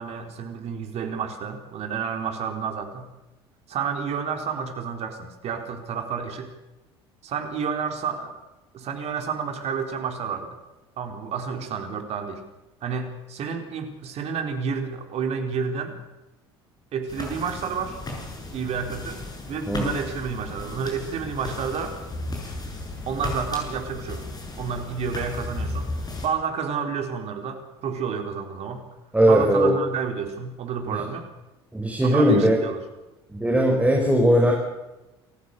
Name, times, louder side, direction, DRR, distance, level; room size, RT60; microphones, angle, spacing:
voice 1, 0.0-3.1 3.7-6.5 7.2-8.3 8.7-10.5 11.0-12.4 12.8-16.0 16.9-18.0 18.5-22.0 23.1-24.2 24.6-25.9 26.2-28.8 29.3-31.3 32.0-32.8, right 6 dB, 50° right, 5 dB, 4.0 m, -30 dB
sound 1, 17.1-26.3, left 2 dB, 30° left, 8.0 m, -35 dB
voice 2, 29.1-29.7 30.9-31.0 31.7-32.6 33.3-34.5, equal, 10° right, 0 dB, 5.4 m, -19 dB
28.0 x 15.0 x 6.7 m, 1.0 s
hypercardioid pair, 60°, 13 cm